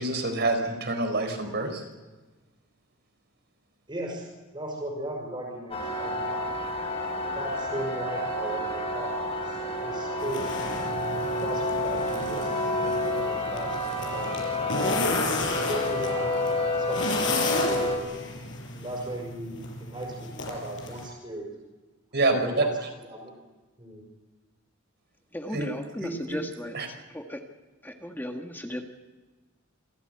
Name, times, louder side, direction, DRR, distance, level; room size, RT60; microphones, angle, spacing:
voice 1, 0.0-1.8 22.1-22.7 25.5-25.7 26.0-26.4 26.7-26.9, right 2 dB, 60° right, 6 dB, 4.4 m, -27 dB
voice 2, 3.9-4.3 4.5-6.2 7.3-10.5 11.3-12.5 12.7-13.7 14.0-14.8 15.4-16.4 16.7-17.9 18.7-21.5 22.2-22.7 23.1-23.4 23.8-24.0, right 1 dB, 25° right, -2 dB, 5.5 m, -37 dB
sound 1, 5.7-18.0, left 1 dB, 30° left, 4.3 m, -29 dB
sound 2, 10.2-21.1, left 3 dB, 65° left, 5.5 m, -33 dB
voice 3, 25.3-27.4 27.8-28.8, equal, 10° left, 3 dB, 1.7 m, -36 dB
27.0 x 14.5 x 7.9 m, 1.3 s
head